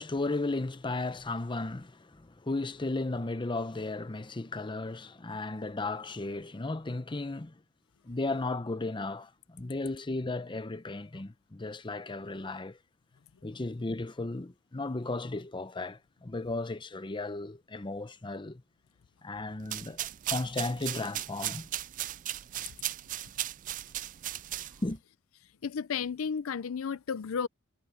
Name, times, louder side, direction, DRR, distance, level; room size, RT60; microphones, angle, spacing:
voice 1, 0.0-7.5 8.1-12.8 13.4-18.6 19.2-21.7 24.8-25.0, left 2 dB, 25° left, 0.7 m, -35 dB
sound 1, 19.6-25.0, right 13 dB, 40° right, 0.4 m, -37 dB
voice 2, 25.6-27.5, left 6 dB, 70° left, 0.5 m, -33 dB
head